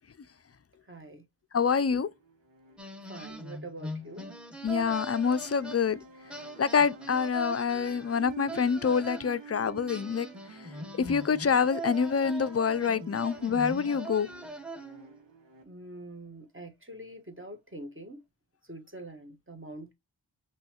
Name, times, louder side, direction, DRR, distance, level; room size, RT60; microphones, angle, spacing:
voice 1, 0.8-1.2 3.1-4.3 15.6-18.2 18.6-19.9, right 1 dB, 30° right, 1.4 m, -45 dB
voice 2, 1.5-2.1 4.6-6.0 6.6-10.3 11.0-14.3, left 6 dB, 35° left, 0.4 m, -26 dB
sound 1, 1.7-15.6, right 4 dB, 85° right, 1.1 m, -51 dB
sound 2, 2.8-6.0 6.3-9.4 9.9-15.1, right 1 dB, ahead, 0.9 m, -41 dB
5.4 x 3.1 x 2.9 m
wide cardioid pair, 60°, 43 cm